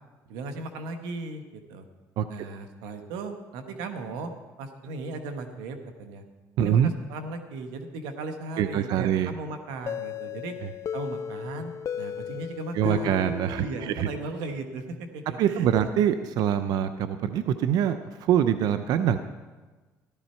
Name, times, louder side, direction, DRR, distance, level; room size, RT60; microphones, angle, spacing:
voice 1, 0.3-1.9 2.3-4.3 4.6-6.2 6.6-10.6 10.9-11.7 12.0-15.9, right 3 dB, 85° right, 6 dB, 1.3 m, -37 dB
voice 2, 6.6-6.9 8.6-9.3 12.7-14.1 15.4-19.2, right 9 dB, 70° right, 11 dB, 0.6 m, -24 dB
sound 1, 9.9-14.5, left 9 dB, 45° left, 0.4 m, -35 dB
14.0 x 12.5 x 4.5 m, 1.3 s
supercardioid pair, 85°, 7 cm